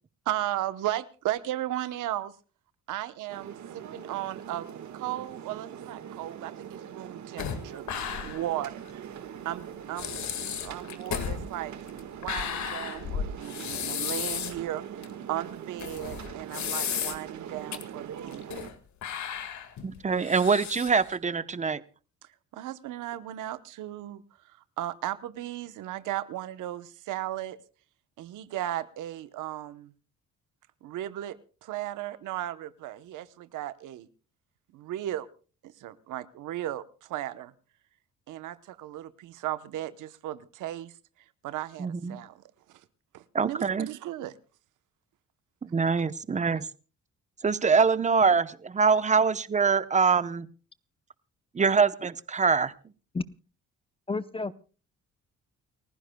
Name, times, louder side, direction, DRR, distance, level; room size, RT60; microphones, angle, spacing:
voice 1, 0.3-2.3 2.9-7.8 8.2-8.9 9.4-10.2 10.6-11.7 12.2-14.8 15.3-18.7 22.5-24.2 24.8-27.6 28.2-29.9 30.8-34.1 34.7-35.3 35.6-37.5 38.3-40.9 41.4-42.4 43.1-44.3, right 13 dB, 85° right, 12 dB, 1.0 m, -35 dB
sound 1, 3.3-18.7, right 9 dB, 70° right, 1.6 m, -42 dB
sound 2, 7.4-8.5 8.9-9.0 9.6-9.7 10.0-14.6 15.0-15.1 15.8-17.4 17.7-17.8 18.3-18.7 19.0-21.2, left 8 dB, 70° left, 1.9 m, -34 dB
voice 2, 19.8-21.8 41.8-42.2 43.3-43.9 45.6-46.7 47.4-50.5 51.6-52.7, right 5 dB, 25° right, 14 dB, 0.8 m, -24 dB
voice 3, 54.1-54.5, left 3 dB, 20° left, 14 dB, 0.7 m, -30 dB
29.5 x 15.5 x 2.3 m, 0.36 s
cardioid pair, 90°, 30 cm